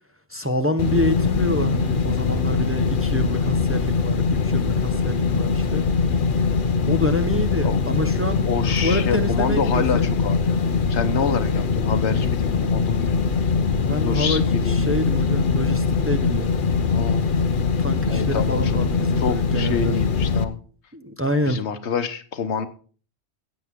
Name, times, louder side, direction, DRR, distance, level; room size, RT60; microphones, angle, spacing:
voice 1, 0.3-5.9 6.9-8.4 8.8-10.1 13.9-16.6 17.8-20.0 20.9-21.6, equal, 15° right, 7 dB, 0.9 m, -27 dB
sound 1, 0.8-20.4, left 5 dB, 50° left, 1.0 m, -22 dB
voice 2, 8.4-10.6 10.9-13.2 14.0-14.8 16.9-17.3 18.1-18.8 19.2-20.6 21.4-22.7, left 6 dB, 80° left, 10 dB, 1.3 m, -27 dB
15.5 x 8.1 x 3.6 m, 0.40 s
omnidirectional pair, 1.1 m